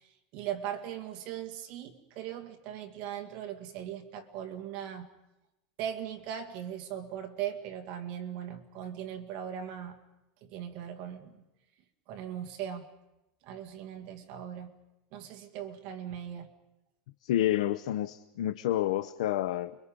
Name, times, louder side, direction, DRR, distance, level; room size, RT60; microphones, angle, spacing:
voice 1, 0.0-5.1 5.8-10.0 10.4-11.4 12.1-12.9 13.4-14.7 15.1-16.5, right 10 dB, 45° right, 5 dB, 2.0 m, -39 dB
voice 2, 17.2-19.8, left 13 dB, 80° left, 11 dB, 0.8 m, -29 dB
29.5 x 23.5 x 5.3 m, 0.95 s
supercardioid pair, 170°, 3 cm